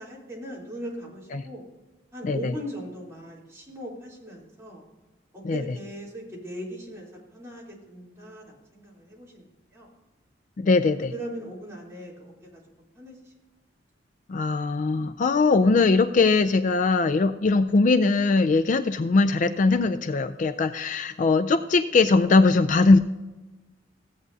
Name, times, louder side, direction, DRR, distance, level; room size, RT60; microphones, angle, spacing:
voice 1, 0.0-1.6 2.1-4.8 5.3-9.5 9.7-9.9 11.1-12.6 12.9-13.3, equal, 15° right, -6 dB, 3.3 m, -39 dB
voice 2, 10.6-11.1 14.3-23.0, left 3 dB, 40° left, 11 dB, 0.4 m, -21 dB
16.0 x 8.4 x 2.7 m, 1.1 s
head